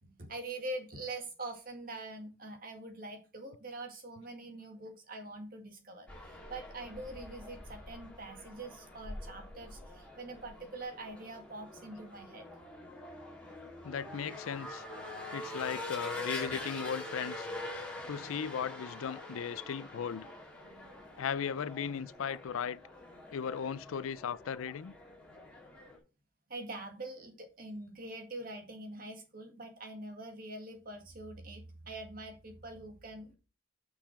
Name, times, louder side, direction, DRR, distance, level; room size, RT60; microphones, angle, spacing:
voice 1, 0.0-12.5 20.6-21.0 26.5-33.3, right 2 dB, 45° right, 1.9 m, -44 dB
sound 1, 6.1-26.0, left 1 dB, 5° left, 2.5 m, -45 dB
voice 2, 13.8-14.8 15.3-17.5 18.1-20.3 21.2-22.8 23.3-24.9, left 7 dB, 85° left, 0.4 m, -37 dB
6.7 x 5.8 x 5.8 m
head